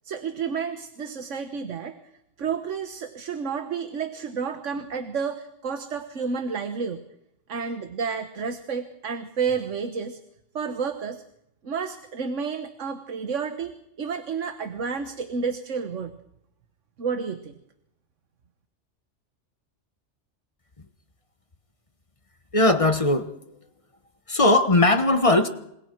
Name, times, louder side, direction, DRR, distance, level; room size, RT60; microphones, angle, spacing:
voice 1, 0.0-2.0 2.4-7.0 7.5-10.2 10.5-11.2 11.6-13.7 14.0-16.2 17.0-17.5, right 6 dB, 85° right, 8 dB, 1.6 m, -30 dB
voice 2, 22.5-23.3 24.3-25.5, left 2 dB, 30° left, 9 dB, 1.3 m, -19 dB
27.0 x 27.0 x 4.6 m, 0.80 s
omnidirectional pair, 1.2 m